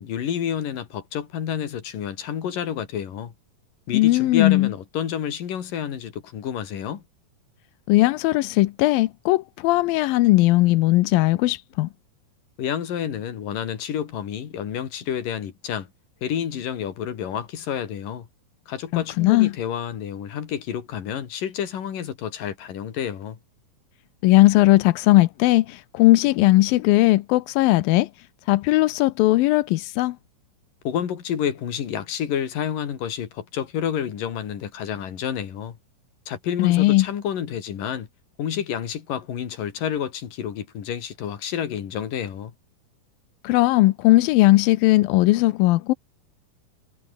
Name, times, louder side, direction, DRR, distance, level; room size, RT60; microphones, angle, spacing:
voice 1, 0.0-3.3 3.9-7.0 12.6-15.9 16.2-18.3 18.7-23.4 30.8-35.8 36.3-38.1 38.4-42.5, left 9 dB, 70° left, 4.1 m, -29 dB
voice 2, 3.9-4.7 7.9-11.9 18.9-19.5 24.2-30.2 36.6-37.1 43.4-45.9, left 18 dB, 85° left, 2.5 m, -18 dB
omnidirectional pair, 4.1 m